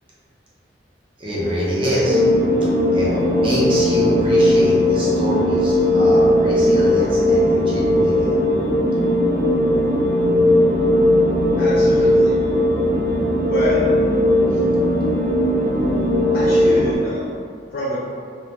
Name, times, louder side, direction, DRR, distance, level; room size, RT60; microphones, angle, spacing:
voice 1, 1.2-2.2 2.9-8.3, equal, 30° right, -8 dB, 0.6 m, -25 dB
sound 1, 2.0-17.0, left 1 dB, 60° right, 0.7 m, -17 dB
voice 2, 11.6-12.4 13.5-13.9 14.5-14.6 16.3-17.4 17.7-18.0, left 1 dB, 50° left, -6 dB, 0.3 m, -26 dB
2.3 x 2.1 x 2.8 m, 2.1 s
head